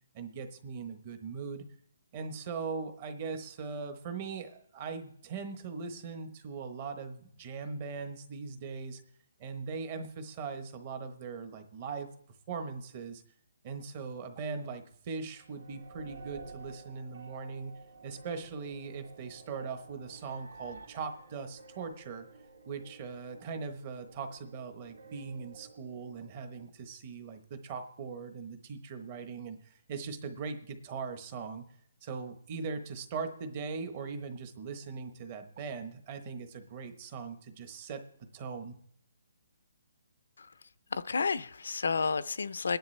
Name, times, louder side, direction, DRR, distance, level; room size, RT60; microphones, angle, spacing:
voice 1, 0.1-1.6 2.1-9.0 9.4-12.1 12.5-13.2 13.6-17.7 18.0-22.3 22.7-31.6 32.0-38.0 38.3-38.7, right 5 dB, 20° right, 7 dB, 1.0 m, -40 dB
sound 1, 15.3-26.6, right 3 dB, 80° right, 2.6 m, -53 dB
voice 2, 40.9-42.8, left 5 dB, 65° left, 14 dB, 0.6 m, -31 dB
21.0 x 10.5 x 3.3 m, 0.67 s
hypercardioid pair, 180°, 0 cm